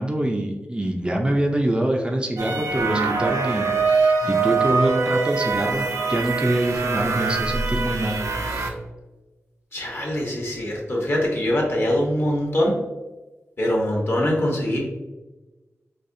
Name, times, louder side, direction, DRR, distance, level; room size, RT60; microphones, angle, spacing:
voice 1, 0.0-8.8, right 1 dB, 20° right, 1 dB, 0.4 m, -25 dB
sound 1, 2.4-8.7, right 4 dB, 80° right, 0.5 m, -23 dB
voice 2, 9.7-12.8 13.6-14.8, left 1 dB, 50° left, -1 dB, 1.0 m, -23 dB
4.1 x 2.7 x 2.6 m, 1.1 s
wide cardioid pair, 100°, 5 cm